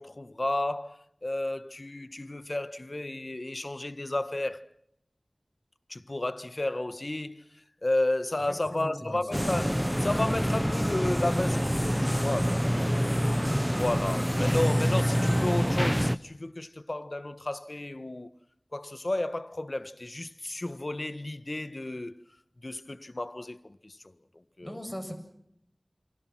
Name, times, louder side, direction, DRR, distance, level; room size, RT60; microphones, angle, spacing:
voice 1, 0.0-4.6 5.9-7.4 7.8-13.2 13.7-18.3 18.7-22.2 22.6-24.0 24.6-24.8, left 1 dB, 50° left, 1.4 m, -32 dB
voice 2, 8.7-9.2 24.6-25.1, equal, 15° left, 7.5 m, -38 dB
sound 1, 9.3-16.1, equal, ahead, 0.9 m, -26 dB
29.0 x 24.0 x 6.0 m
wide cardioid pair, 40°, 0 cm